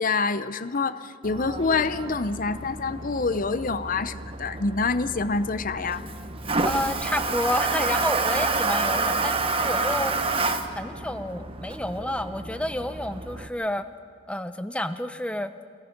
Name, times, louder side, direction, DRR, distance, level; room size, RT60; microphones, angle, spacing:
voice 1, 0.0-6.1, left 4 dB, 40° left, 13 dB, 0.7 m, -26 dB
Toilet flush, 1.2-13.5, right 3 dB, 25° right, 1.0 m, -29 dB
voice 2, 6.6-10.1 10.7-13.8 14.3-15.5, left 1 dB, 5° left, 10 dB, 0.7 m, -30 dB
27.0 x 20.0 x 6.0 m, 2.4 s
head